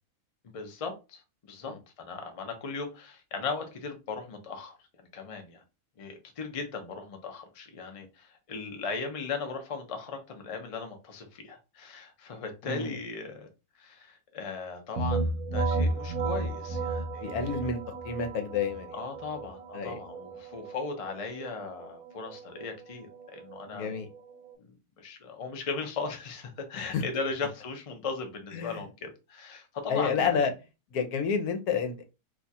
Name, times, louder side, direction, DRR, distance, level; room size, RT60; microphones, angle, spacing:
voice 1, 0.4-1.2 1.5-4.8 5.1-5.6 6.0-13.5 13.7-17.7 18.9-24.0 24.6-30.4, left 4 dB, 50° left, 0.4 m, -38 dB
voice 2, 12.6-13.0 17.2-17.8 18.0-18.9 19.7-20.0 23.7-24.1 26.8-27.0 28.5-28.8 29.9-30.5 30.9-32.0, left 6 dB, 75° left, 1.1 m, -30 dB
sound 1, 15.0-24.5, right 3 dB, 65° right, 1.1 m, -34 dB
2.7 x 2.3 x 4.1 m
omnidirectional pair, 1.6 m